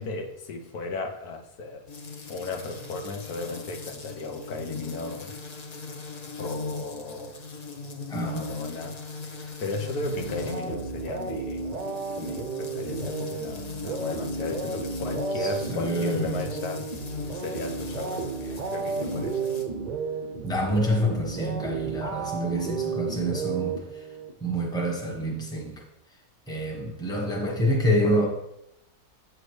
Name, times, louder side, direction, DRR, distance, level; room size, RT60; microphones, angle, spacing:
voice 1, 0.0-1.8 2.3-5.3 6.4-7.4 8.1-9.0 9.2-11.7 12.2-16.9 17.3-19.4 27.2-27.6 27.9-28.3, left 3 dB, 80° left, 4 dB, 1.4 m, -35 dB
sound 1, 1.9-19.6, left 4 dB, 40° left, 0.6 m, -38 dB
voice 2, 8.1-8.6 15.4-16.5 20.4-24.0 24.4-25.8 26.5-28.3, equal, 5° left, -2 dB, 1.0 m, -27 dB
sound 2, 10.0-24.3, right 4 dB, 45° right, 0.5 m, -33 dB
8.0 x 6.2 x 3.2 m, 0.84 s
omnidirectional pair, 1.6 m